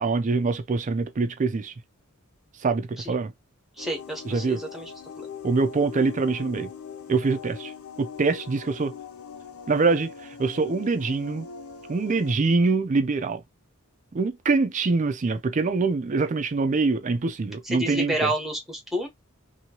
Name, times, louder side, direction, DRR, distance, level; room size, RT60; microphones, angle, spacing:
voice 1, 0.0-1.7 2.6-3.3 4.3-4.6 5.4-6.7 7.1-7.7 8.0-9.0 9.7-11.5 11.9-13.4 14.1-18.3, right 4 dB, 35° right, 0.4 m, -24 dB
sound 1, 3.8-12.3, left 6 dB, 85° left, 0.6 m, -41 dB
voice 2, 3.8-4.9 5.2-5.3 17.6-19.1, right 1 dB, ahead, 1.0 m, -29 dB
2.9 x 2.7 x 2.8 m
head